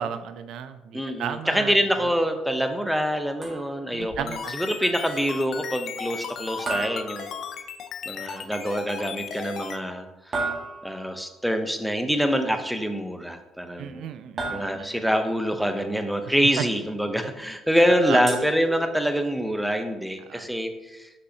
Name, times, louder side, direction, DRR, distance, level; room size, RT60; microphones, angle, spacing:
voice 1, 0.0-1.8 3.9-4.6 13.8-14.9 16.6-16.7 18.0-18.2 20.3-20.4, right 9 dB, 70° right, 11 dB, 0.3 m, -33 dB
voice 2, 0.9-7.3 8.1-10.5 10.8-14.1 14.5-21.1, equal, ahead, 6 dB, 0.6 m, -25 dB
sound 1, 3.4-4.0 6.7-7.9 10.3-11.2 14.4-15.2 18.3-19.3, right 3 dB, 40° right, 1.6 m, -34 dB
sound 2, 4.0-9.8, left 7 dB, 60° left, 0.5 m, -36 dB
6.4 x 5.4 x 2.7 m, 1.0 s
cardioid pair, 100°, 0 cm